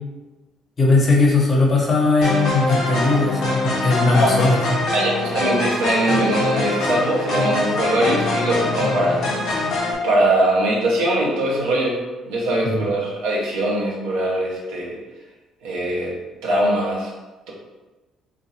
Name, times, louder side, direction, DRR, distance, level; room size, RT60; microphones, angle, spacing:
voice 1, 0.8-4.6 12.6-12.8, left 3 dB, 40° left, -2 dB, 1.0 m, -18 dB
sound 1, 2.2-10.0, left 2 dB, 65° left, 0.7 m, -23 dB
voice 2, 4.9-9.3 10.0-12.0 12.2-15.0 15.6-17.1, right 1 dB, 75° right, -3 dB, 0.7 m, -21 dB
3.8 x 2.4 x 2.7 m, 1.2 s
hypercardioid pair, 50°, 0 cm